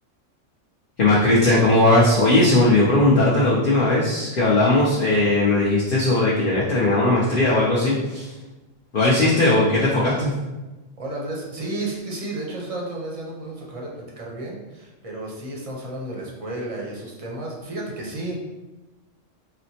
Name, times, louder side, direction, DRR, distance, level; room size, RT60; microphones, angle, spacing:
voice 1, 1.0-8.3 8.9-10.3, left 2 dB, 55° left, -7 dB, 0.7 m, -18 dB
voice 2, 11.0-18.4, right 2 dB, 40° right, -3 dB, 0.5 m, -32 dB
4.2 x 2.0 x 2.7 m, 1.1 s
omnidirectional pair, 1.3 m